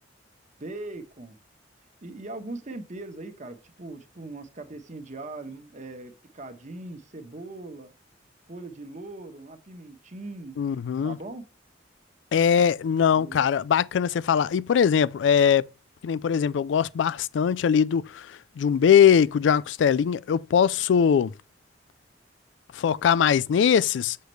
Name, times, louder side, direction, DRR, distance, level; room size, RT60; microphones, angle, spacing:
voice 1, 0.6-1.4 2.0-7.9 8.5-10.6 11.0-11.4 13.1-13.4, right 2 dB, 45° right, 1.1 m, -40 dB
voice 2, 10.6-11.2 12.3-15.7 16.0-21.3 22.7-24.2, left 7 dB, 85° left, 0.3 m, -21 dB
6.6 x 6.5 x 3.2 m
head